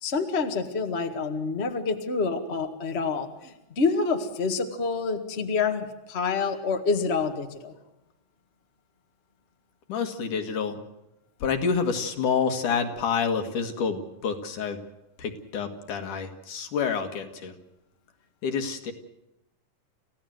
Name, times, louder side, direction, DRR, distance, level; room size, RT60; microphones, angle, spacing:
voice 1, 0.0-7.7, left 4 dB, 30° left, 5 dB, 1.3 m, -27 dB
voice 2, 9.9-10.8 11.4-14.8 15.2-17.5 18.4-18.9, left 6 dB, 65° left, 6 dB, 3.2 m, -28 dB
28.5 x 16.0 x 7.9 m, 0.91 s
omnidirectional pair, 3.9 m